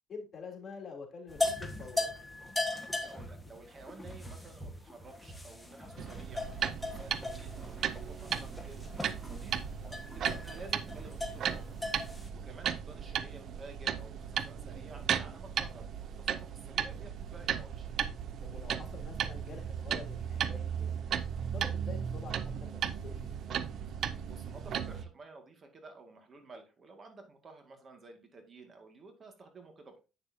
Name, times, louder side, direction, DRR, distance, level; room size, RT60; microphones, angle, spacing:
voice 1, 0.1-2.1 9.8-10.0 11.9-12.2 18.4-21.0 21.5-23.3, left 5 dB, 40° left, 1 dB, 3.3 m, -47 dB
sound 1, 1.3-12.3, left 2 dB, 5° left, 1.5 m, -39 dB
voice 2, 3.0-9.6 9.9-11.8 12.3-17.9 24.2-30.0, right 3 dB, 40° right, 5 dB, 2.0 m, -52 dB
sound 2, 6.0-25.1, right 8 dB, 60° right, 0.7 m, -36 dB
8.6 x 6.6 x 2.8 m, 0.30 s
cardioid pair, 95°, 0 cm